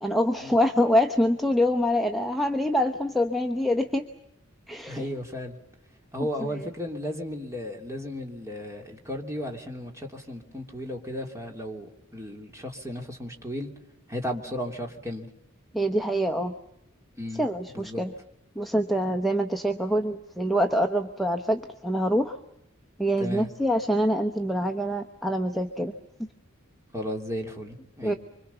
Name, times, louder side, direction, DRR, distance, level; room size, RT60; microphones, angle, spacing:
voice 1, 0.0-4.0 4.7-5.1 15.7-16.5 17.4-18.1 18.6-22.4 23.0-25.9 26.2-26.3 28.0-28.1, equal, ahead, 4 dB, 1.1 m, -25 dB
voice 2, 4.9-5.6 6.1-13.7 14.1-15.3 17.2-17.4 17.7-18.1 23.2-23.5 26.9-28.2, equal, 15° right, 2 dB, 3.0 m, -34 dB
25.5 x 25.0 x 7.0 m, 0.84 s
head